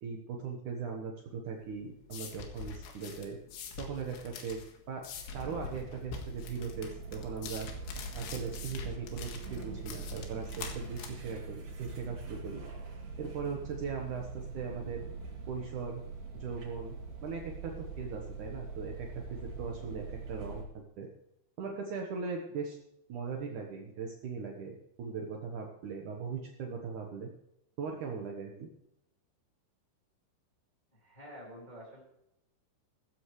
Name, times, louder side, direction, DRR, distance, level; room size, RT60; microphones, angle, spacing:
voice 1, 0.0-3.4 3.8-4.6 4.9-5.1 5.3-7.7 8.1-12.6 13.2-15.0 15.5-16.0 16.3-17.0 17.2-21.1 21.6-22.8 23.1-27.3 27.8-28.7, right 5 dB, 80° right, 0 dB, 1.8 m, -39 dB
sound 1, 1.6-12.9, left 6 dB, 75° left, 3.9 m, -45 dB
sound 2, 5.3-20.6, right 4 dB, 50° right, 4.2 m, -43 dB
voice 2, 30.9-32.0, equal, 10° left, -4 dB, 3.5 m, -49 dB
16.0 x 14.5 x 3.2 m, 0.82 s
omnidirectional pair, 5.6 m